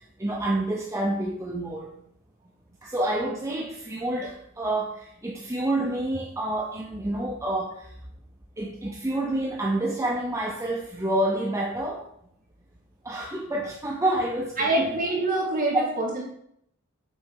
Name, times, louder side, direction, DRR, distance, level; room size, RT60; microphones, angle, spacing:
voice 1, 0.2-1.9 2.8-7.9 8.6-12.0 13.0-14.9, right 1 dB, 15° right, -2 dB, 0.6 m, -28 dB
voice 2, 14.6-16.2, right 2 dB, 40° right, -4 dB, 2.1 m, -25 dB
6.3 x 3.9 x 4.7 m, 0.71 s
head